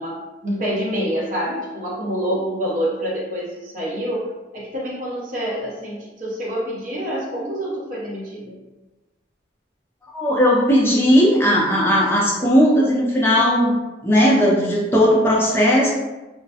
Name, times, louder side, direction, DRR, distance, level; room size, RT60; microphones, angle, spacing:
voice 1, 0.0-4.3 4.5-8.6, equal, 45° right, -5 dB, 0.7 m, -27 dB
voice 2, 10.1-13.8 14.0-15.9, equal, 10° left, -4 dB, 0.4 m, -17 dB
2.3 x 2.0 x 2.7 m, 1.1 s
head